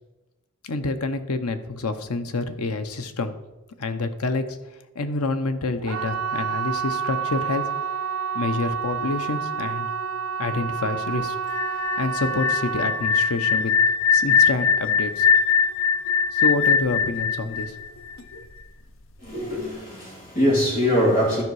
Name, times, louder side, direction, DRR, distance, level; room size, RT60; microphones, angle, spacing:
voice 1, 0.6-3.3 3.8-4.6 4.9-7.7 8.3-9.9 10.4-11.3 12.0-13.7 14.1-15.3 16.3-17.8, left 3 dB, 85° left, 0.8 m, -27 dB
sound 1, 5.8-16.7 16.9-17.5 17.9-18.0, right 7 dB, 60° right, 1.0 m, -30 dB
sound 2, 11.5-18.4, left 6 dB, 60° left, 0.6 m, -21 dB
voice 2, 19.2-21.4, equal, 35° left, 2.6 m, -22 dB
12.5 x 5.2 x 4.8 m
head